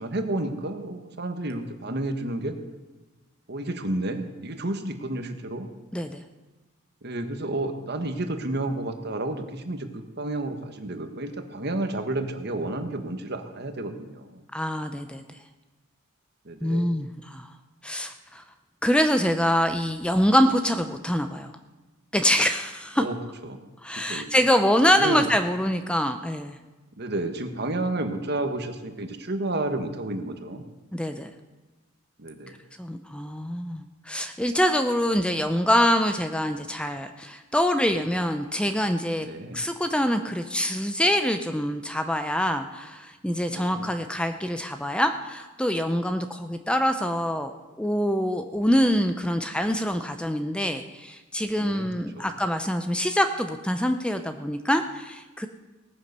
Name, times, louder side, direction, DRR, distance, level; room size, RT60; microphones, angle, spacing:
voice 1, 0.0-2.6 3.5-5.7 7.0-14.4 16.4-16.9 23.0-23.2 23.4-23.6 23.9-24.3 24.9-25.3 27.0-30.7 32.2-32.5 39.2-39.6 43.5-43.9 51.6-51.9 52.1-52.3, right 2 dB, 50° right, 7 dB, 1.4 m, -31 dB
voice 2, 14.5-15.2 16.6-17.5 17.8-18.4 18.8-21.5 22.1-23.1 23.8-26.6 30.9-31.3 32.8-39.3 39.5-47.5 47.8-55.5, equal, 5° left, 7 dB, 0.6 m, -25 dB
18.0 x 9.5 x 6.8 m, 1.2 s
head